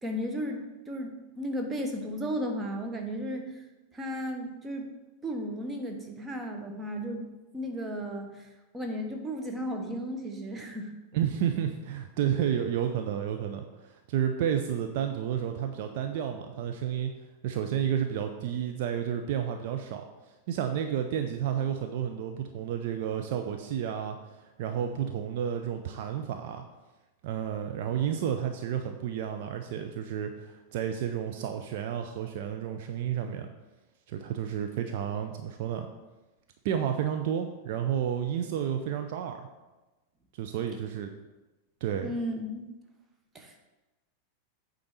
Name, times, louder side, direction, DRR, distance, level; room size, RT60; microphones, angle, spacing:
voice 1, 0.0-3.6 3.9-4.9 5.2-8.5 8.7-10.9 42.0-42.7 43.3-43.6, equal, 15° right, 3 dB, 1.1 m, -34 dB
voice 2, 11.1-17.1 17.4-20.0 20.5-26.6 27.2-33.5 34.1-35.9 36.6-39.5 40.3-41.1 41.8-42.2, right 9 dB, 50° right, 5 dB, 0.5 m, -31 dB
8.6 x 3.9 x 6.0 m, 1.1 s
figure-of-eight pair, 90°, 0 cm